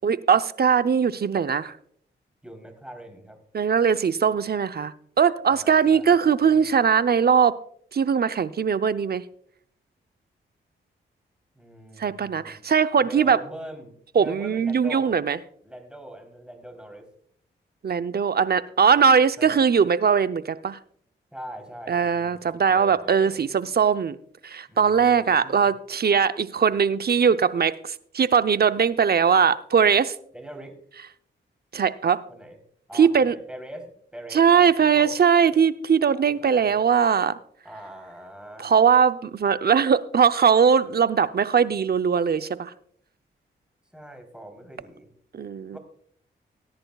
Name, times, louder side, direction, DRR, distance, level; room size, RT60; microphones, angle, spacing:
voice 1, 0.0-1.7 3.5-7.5 7.9-9.2 12.0-13.4 14.1-15.4 17.8-20.8 21.9-24.2 24.4-30.1 31.7-32.2 32.9-33.3 34.3-37.4 38.6-42.7 45.3-45.8, right 6 dB, 50° right, 12 dB, 0.7 m, -20 dB
voice 2, 2.4-3.4 5.5-6.7 11.5-12.6 13.0-15.2 15.6-17.1 18.9-19.6 21.3-23.4 24.7-25.7 30.3-30.7 32.3-32.6 32.9-34.6 34.9-35.2 35.5-35.6 36.1-36.8 37.6-38.7 43.9-45.1 45.7-45.8, right 1 dB, 5° right, 4 dB, 3.7 m, -42 dB
18.0 x 10.5 x 2.4 m, 0.64 s
cardioid pair, 50°, 21 cm